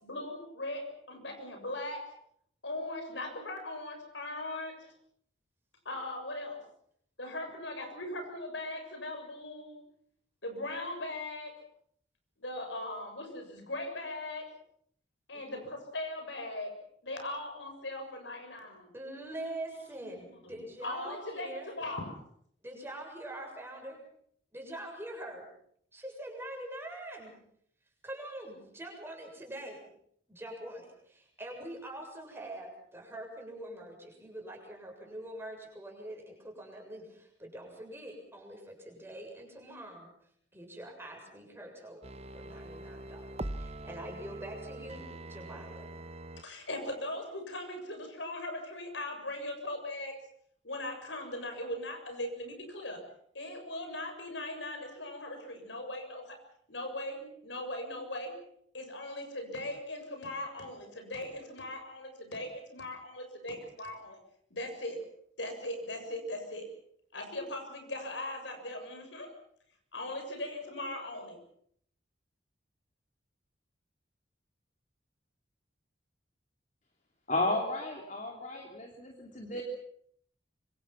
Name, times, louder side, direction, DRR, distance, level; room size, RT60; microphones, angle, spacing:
voice 1, 0.0-2.0 2.6-4.8 5.9-6.6 7.2-9.8 10.4-11.5 12.4-14.5 15.3-16.7 17.0-18.9 20.4-20.5 20.8-22.2 46.4-50.2 50.6-53.0 53.3-56.4 56.7-58.4 58.7-64.2 64.5-65.0 65.4-66.7 67.1-69.3 69.9-71.4, left 1 dB, 75° left, 5 dB, 7.1 m, -39 dB
voice 2, 15.3-15.7 18.9-21.7 22.6-24.0 24.5-25.5 25.9-27.3 28.0-29.8 30.3-40.1 40.5-42.0 42.3-45.9, right 1 dB, 10° right, 1 dB, 7.4 m, -44 dB
sound 1, 42.0-46.4 46.8-46.9, right 1 dB, 35° right, 1.1 m, -43 dB
voice 3, 77.3-79.6, left 2 dB, 40° left, 1 dB, 3.2 m, -33 dB
26.5 x 25.0 x 6.0 m, 0.66 s
head